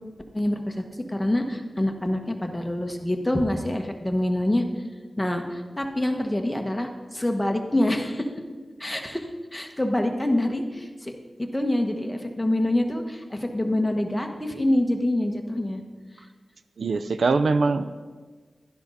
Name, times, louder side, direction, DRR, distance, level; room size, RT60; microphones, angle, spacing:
voice 1, 0.3-4.6 5.2-8.3 8.8-15.8, left 1 dB, 10° left, 4 dB, 1.3 m, -26 dB
voice 2, 16.8-17.9, right 3 dB, 80° right, 12 dB, 0.5 m, -22 dB
12.0 x 10.5 x 4.1 m, 1.4 s
wide cardioid pair, 70°, 0 cm